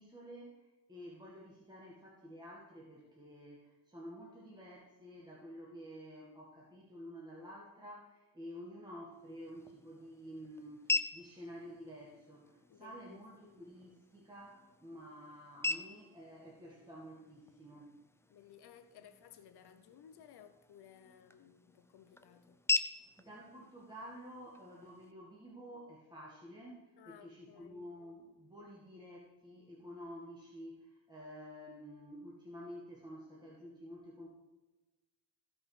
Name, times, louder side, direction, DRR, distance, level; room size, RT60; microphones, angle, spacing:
voice 1, 0.0-17.9 23.2-34.3, equal, 10° right, 1.9 m, -50 dB
sound 1, 9.1-25.1, left 2 dB, 5° left, 0.4 m, -42 dB
voice 2, 12.7-13.2 18.3-22.6 27.0-27.9, left 9 dB, 75° left, 0.8 m, -58 dB
15.5 x 5.4 x 5.0 m
cardioid pair, 120°, 40 cm